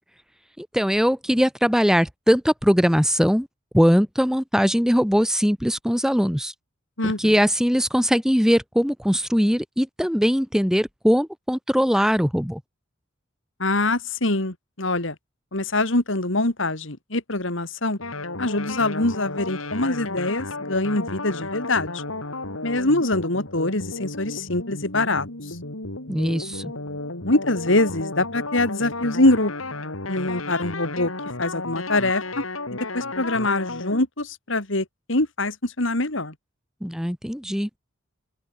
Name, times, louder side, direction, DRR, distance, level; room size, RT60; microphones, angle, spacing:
voice 1, 0.6-3.5 3.7-6.5 7.0-12.6 26.1-26.7 36.8-37.7, equal, 5° right, 2.4 m, -21 dB
voice 2, 7.0-7.3 13.6-15.1 15.5-18.0 18.4-22.0 22.6-25.6 27.2-29.5 30.1-31.1 31.4-32.4 32.7-36.3, left 2 dB, 65° left, 3.2 m, -24 dB
sound 1, 18.0-34.0, left 2 dB, 90° left, 5.2 m, -33 dB
open air
head